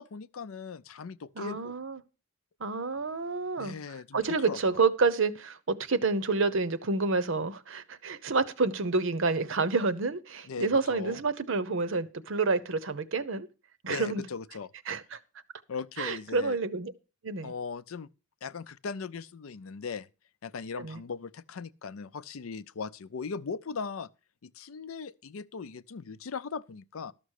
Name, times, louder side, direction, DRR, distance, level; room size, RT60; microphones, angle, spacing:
voice 1, 0.0-1.7 3.6-4.2 4.5-4.8 10.5-11.2 13.9-14.7 15.7-16.6 17.4-18.1 18.4-20.1 20.4-24.1 24.4-27.1, left 5 dB, 75° left, 0.5 m, -39 dB
voice 2, 1.4-2.0 2.6-3.8 4.1-13.5 13.8-14.3 14.9-15.2 16.0-16.9 17.2-17.5 20.8-21.0, right 4 dB, 65° right, 0.8 m, -29 dB
12.5 x 6.1 x 6.4 m
head